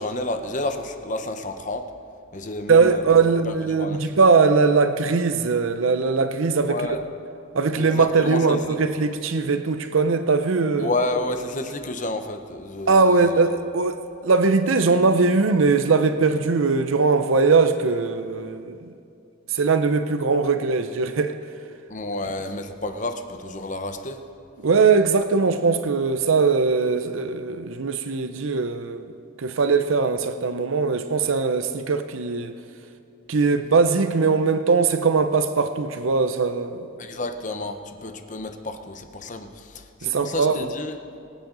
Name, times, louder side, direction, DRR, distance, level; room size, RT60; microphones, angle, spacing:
voice 1, 0.0-1.8 2.3-3.0 3.5-4.0 6.7-7.0 7.7-8.6 10.8-13.3 21.9-24.2 37.0-40.9, left 2 dB, 35° left, 6 dB, 0.8 m, -30 dB
voice 2, 2.7-6.8 7.5-10.9 12.9-18.9 19.5-21.4 24.6-29.1 29.4-32.5 33.3-36.9 40.0-40.7, right 4 dB, 75° right, 9 dB, 0.6 m, -20 dB
23.5 x 8.9 x 3.9 m, 2.5 s
head